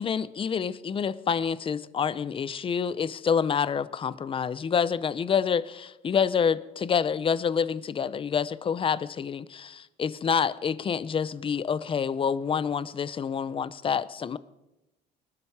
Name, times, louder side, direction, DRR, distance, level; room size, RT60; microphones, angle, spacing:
voice 1, 0.0-14.4, left 7 dB, 30° left, 17 dB, 0.6 m, -27 dB
19.5 x 12.5 x 4.8 m, 0.95 s
cardioid pair, 110°, 17 cm